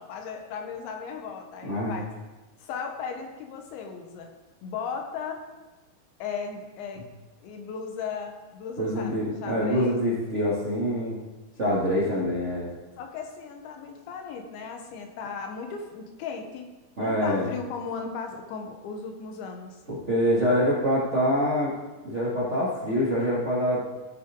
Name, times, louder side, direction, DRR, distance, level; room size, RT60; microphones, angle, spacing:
voice 1, 0.0-2.1 2.6-4.3 4.6-5.4 6.2-7.0 7.4-10.0 13.0-16.7 17.0-19.8, left 5 dB, 75° left, 3 dB, 3.3 m, -36 dB
voice 2, 1.6-1.9 8.8-11.2 11.6-12.7 17.0-17.5 19.9-21.7 22.0-23.8, equal, 45° right, -7 dB, 0.9 m, -25 dB
17.0 x 7.5 x 3.8 m, 1.2 s
omnidirectional pair, 5.5 m